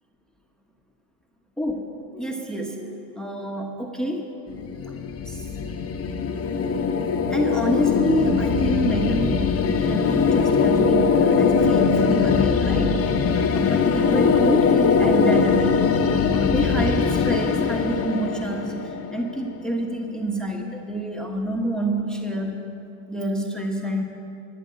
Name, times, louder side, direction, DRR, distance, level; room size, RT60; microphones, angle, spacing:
voice 1, 1.6-4.4 5.3-5.5 7.3-13.0 13.5-15.8 16.3-22.7 23.1-24.0, right 1 dB, ahead, 1 dB, 1.1 m, -27 dB
sound 1, 4.5-19.5, left 5 dB, 35° left, 1.1 m, -21 dB
12.5 x 7.4 x 9.6 m, 2.8 s
supercardioid pair, 100°, 43 cm